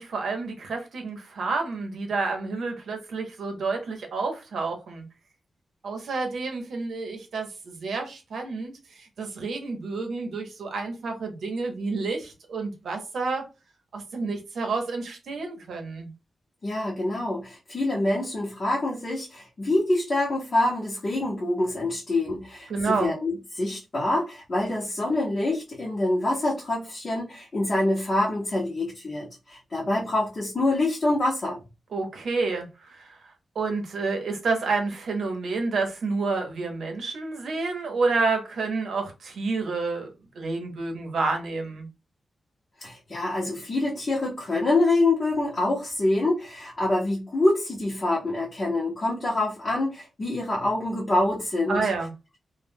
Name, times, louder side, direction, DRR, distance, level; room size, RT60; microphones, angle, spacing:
voice 1, 0.0-5.0 5.8-13.4 13.9-16.1 22.7-23.1 31.9-40.1 40.3-41.9 51.7-52.1, right 3 dB, 80° right, 0.7 m, -29 dB
voice 2, 16.6-31.6 42.8-51.9, left 2 dB, 35° left, 0.7 m, -26 dB
2.1 x 2.1 x 3.2 m
wide cardioid pair, 140°, 0 cm